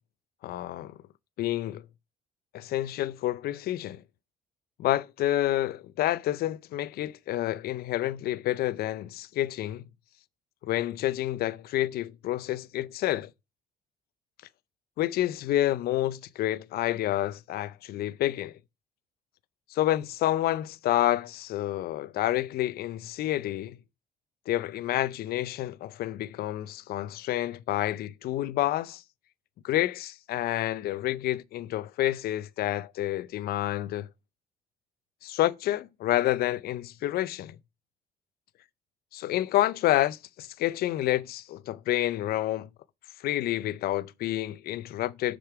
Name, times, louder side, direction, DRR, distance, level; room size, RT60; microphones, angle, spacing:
voice 1, 0.4-1.0 1.4-1.8 2.5-4.0 4.8-9.9 10.6-13.3 15.0-18.5 19.7-23.8 24.5-29.0 29.6-34.1 35.2-37.6 39.1-42.7 43.2-45.4, left 14 dB, 65° left, 0.5 m, -29 dB
6.6 x 5.1 x 4.6 m
cardioid pair, 110°, 17 cm